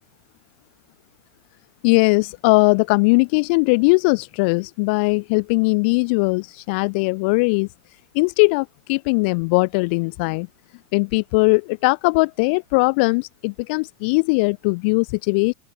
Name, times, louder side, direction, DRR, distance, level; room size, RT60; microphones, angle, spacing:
voice 1, 1.8-7.7 8.1-10.5 10.9-15.5, left 30 dB, 40° left, 7.2 m, -19 dB
open air
supercardioid pair, 170°, 9 cm